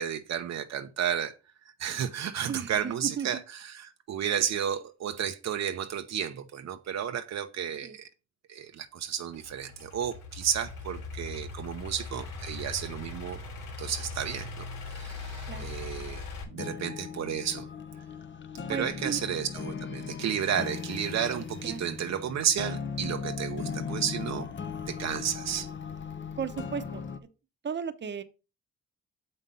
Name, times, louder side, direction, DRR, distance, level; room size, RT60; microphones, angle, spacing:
voice 1, 0.0-1.4 1.8-8.1 8.5-13.4 13.8-16.2 16.5-17.7 18.7-24.5 24.9-25.7, right 9 dB, 60° right, 0.9 m, -32 dB
voice 2, 2.5-3.3 7.8-8.0 15.5-15.7 18.7-19.2 21.6-21.8 26.4-27.1 27.6-28.2, right 7 dB, 35° right, 1.0 m, -34 dB
Idling / Accelerating revving vroom, 9.3-16.4, left 4 dB, 85° left, 3.3 m, -40 dB
sound 1, 16.5-27.2, left 6 dB, 40° left, 0.9 m, -38 dB
7.1 x 5.4 x 5.6 m
cardioid pair, 90°, 30 cm